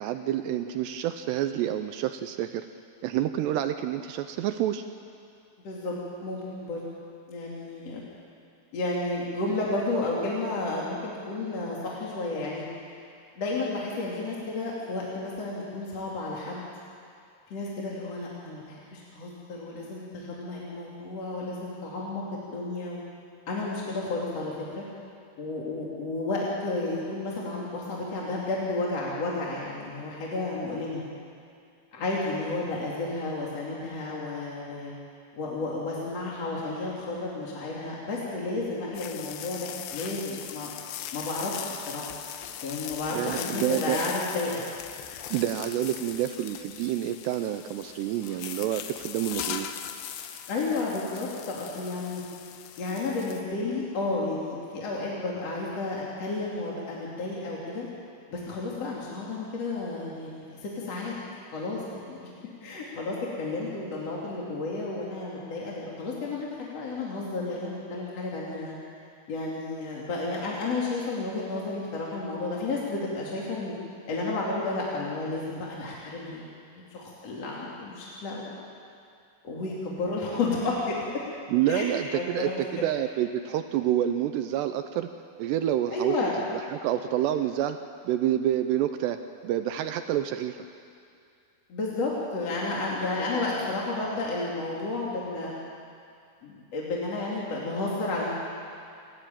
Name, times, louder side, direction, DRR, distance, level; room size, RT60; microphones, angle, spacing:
voice 1, 0.0-2.7 3.0-4.8 43.1-44.0 45.3-49.7 81.5-85.1 85.4-86.1 86.5-87.8 88.0-89.2 89.4-90.6, right 11 dB, 80° right, 8 dB, 2.5 m, -28 dB
voice 2, 5.6-5.9 6.2-6.8 7.3-8.0 8.7-12.7 13.4-16.7 17.5-22.2 22.5-23.0 23.5-24.8 25.4-31.0 31.9-34.9 35.3-40.7 41.1-42.1 42.6-44.6 50.5-52.2 52.8-57.9 58.3-61.1 61.5-62.3 62.6-68.8 69.3-73.7 74.1-76.4 76.9-78.5 79.4-81.0 81.7-81.9 82.1-82.9 85.9-86.3 91.7-95.5 96.4-98.3, left 2 dB, 40° left, -4 dB, 3.0 m, -32 dB
sound 1, 38.9-53.4, left 10 dB, 75° left, 3.0 m, -39 dB
29.0 x 12.5 x 9.1 m, 2.4 s
omnidirectional pair, 5.5 m